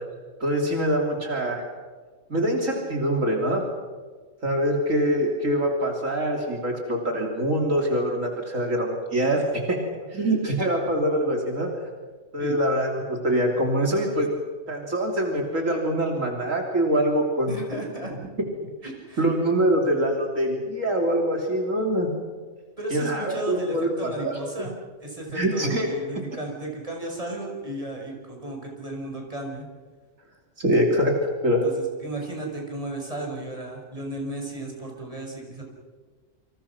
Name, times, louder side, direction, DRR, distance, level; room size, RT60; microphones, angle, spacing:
voice 1, 0.4-1.6 2.3-3.6 4.4-9.8 10.1-11.7 12.3-14.3 14.7-17.6 18.8-18.9 19.2-22.1 22.9-24.7 25.3-25.9 30.6-31.1 31.4-31.6, right 1 dB, 70° right, 1 dB, 3.6 m, -24 dB
voice 2, 17.5-18.1 19.1-19.3 22.8-29.7 31.6-35.6, right 1 dB, 25° right, 0 dB, 6.0 m, -34 dB
29.0 x 26.0 x 6.0 m, 1.5 s
omnidirectional pair, 1.4 m